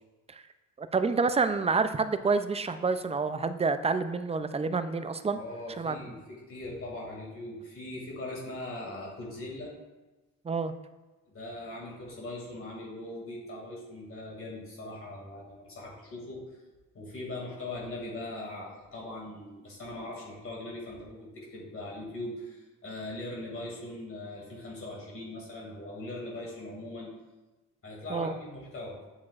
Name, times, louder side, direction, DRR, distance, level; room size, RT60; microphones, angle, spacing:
voice 1, 0.8-5.4 5.8-6.0 10.4-10.7 28.1-28.3, right 4 dB, 20° right, 11 dB, 0.4 m, -28 dB
voice 2, 5.3-9.7 11.3-16.4 16.9-27.1 27.8-29.1, left 2 dB, 45° left, -3 dB, 2.4 m, -40 dB
8.3 x 7.2 x 2.4 m, 1.1 s
cardioid pair, 90°, 30 cm